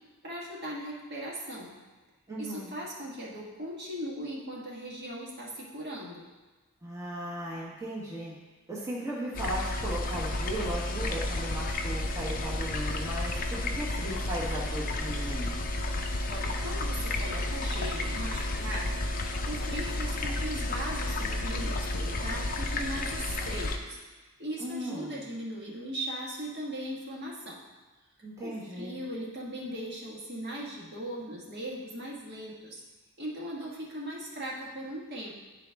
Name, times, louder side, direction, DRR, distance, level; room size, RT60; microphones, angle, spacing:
voice 1, 0.2-1.7 2.4-6.2 16.3-19.0 19.5-27.6 28.4-32.8 33.2-35.3, equal, 50° right, -4 dB, 1.5 m, -38 dB
voice 2, 2.3-2.7 6.8-8.3 8.7-15.6 24.6-25.2 28.2-28.9, right 1 dB, 15° right, -7 dB, 1.2 m, -37 dB
sound 1, 9.3-23.8, left 1 dB, 40° left, 0.5 m, -32 dB
10.5 x 4.1 x 3.4 m, 1.3 s
head